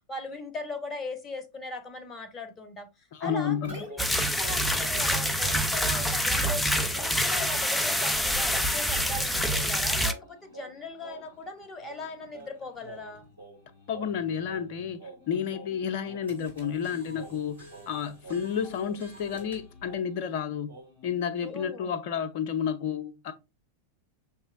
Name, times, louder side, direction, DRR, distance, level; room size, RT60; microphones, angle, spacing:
voice 1, 0.1-4.0 4.3-6.6 6.9-13.2 21.4-21.9, left 2 dB, 20° left, 0.9 m, -39 dB
voice 2, 3.1-3.9 13.9-23.3, left 8 dB, 45° left, 0.6 m, -31 dB
sound 1, 3.4-20.3 20.7-21.1, right 2 dB, 90° right, 2.6 m, -48 dB
sound 2, 4.0-10.1, equal, 5° left, 0.4 m, -26 dB
6.2 x 3.0 x 2.5 m
figure-of-eight pair, 90°, 0 cm